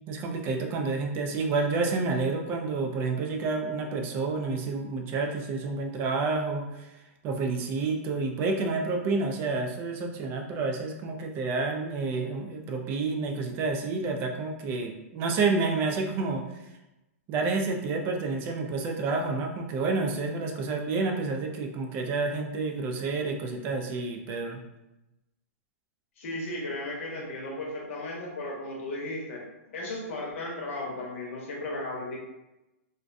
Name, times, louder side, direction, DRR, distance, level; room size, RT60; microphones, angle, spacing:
voice 1, 0.1-6.9 7.2-16.4 17.3-24.6, right 3 dB, 25° right, 3 dB, 0.3 m, -29 dB
voice 2, 26.2-32.2, left 2 dB, 60° left, -2 dB, 0.8 m, -35 dB
2.6 x 2.1 x 2.5 m, 0.97 s
hypercardioid pair, 145°, 8 cm